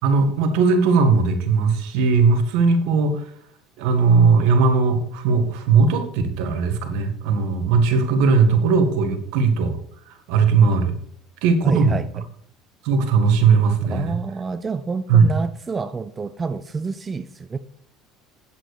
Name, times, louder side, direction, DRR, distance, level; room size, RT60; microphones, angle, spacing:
voice 1, 0.0-3.3 3.8-9.8 10.1-11.0 11.4-12.0 12.8-14.2 15.1-15.4, right 4 dB, 75° right, 7 dB, 1.9 m, -18 dB
voice 2, 11.6-12.2 13.9-17.6, right 4 dB, 20° right, 12 dB, 0.5 m, -28 dB
8.9 x 7.8 x 4.9 m, 0.64 s
supercardioid pair, 120°, 0 cm